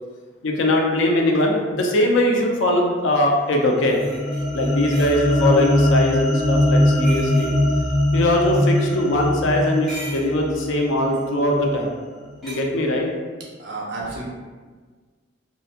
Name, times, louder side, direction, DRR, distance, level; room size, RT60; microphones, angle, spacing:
voice 1, 0.4-4.0 4.5-7.5 8.1-11.9 12.4-13.1, left 1 dB, 80° left, 0 dB, 0.4 m, -20 dB
sound 1, 3.1-3.2 3.9-5.2 6.9-7.5 9.6-10.4 11.1-11.3 12.4-12.6, right 1 dB, ahead, 0.8 m, -38 dB
sound 2, 3.5-12.0, left 1 dB, 40° left, 0.8 m, -22 dB
voice 2, 13.6-14.2, right 3 dB, 65° right, -5 dB, 0.6 m, -31 dB
2.8 x 2.0 x 2.3 m, 1.5 s
head